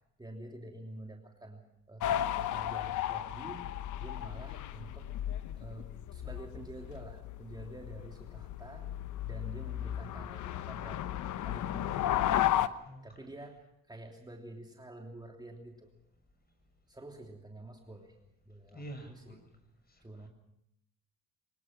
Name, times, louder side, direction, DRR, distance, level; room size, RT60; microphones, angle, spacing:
voice 1, 0.2-3.7 4.0-5.1 5.6-8.9 9.2-11.1 11.4-12.6 13.0-15.9 16.9-18.1 18.4-19.4 20.0-20.3, right 1 dB, 15° right, 1 dB, 3.0 m, -48 dB
sound 1, 2.0-12.7, left 12 dB, 75° left, 1.0 m, -34 dB
voice 2, 12.8-13.3 18.7-19.5 19.9-20.3, right 1 dB, 30° left, 6 dB, 7.0 m, -48 dB
24.5 x 20.0 x 6.1 m, 0.77 s
cardioid pair, 90°, 30 cm